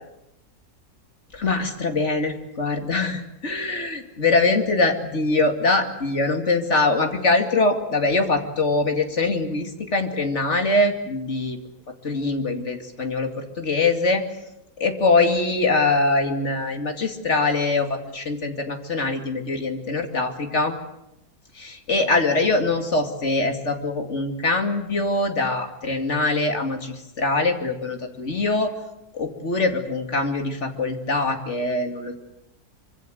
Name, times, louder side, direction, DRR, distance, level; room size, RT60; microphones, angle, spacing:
voice 1, 1.3-11.6 12.0-14.2 14.8-20.7 21.6-28.7 29.1-32.1, left 3 dB, 45° left, 5 dB, 2.8 m, -23 dB
25.0 x 25.0 x 7.9 m, 0.86 s
omnidirectional pair, 1.7 m